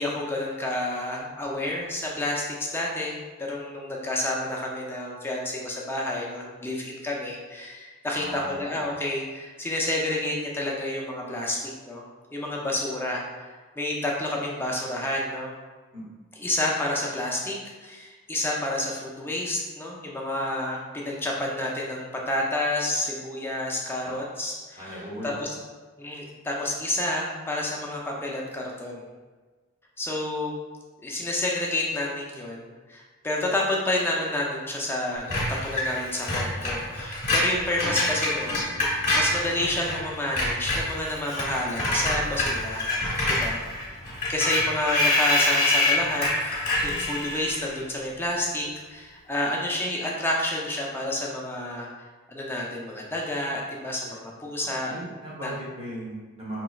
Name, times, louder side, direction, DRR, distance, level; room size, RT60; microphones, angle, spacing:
voice 1, 0.0-12.0 12.3-13.5 13.8-15.5 16.4-25.0 25.2-25.5 26.0-29.1 30.0-30.6 31.0-42.9 43.3-43.6 44.3-51.9 52.3-54.9 55.4-55.5, left 1 dB, 10° left, -3 dB, 0.5 m, -29 dB
voice 2, 8.1-8.6 15.9-16.1 24.0-24.2 24.7-25.3 44.0-44.2 54.6-56.6, right 1 dB, 30° right, -5 dB, 1.1 m, -38 dB
Screech, 35.3-40.0 40.3-47.7, left 1 dB, 35° left, 1.3 m, -26 dB
5.3 x 2.9 x 2.3 m, 1.4 s
head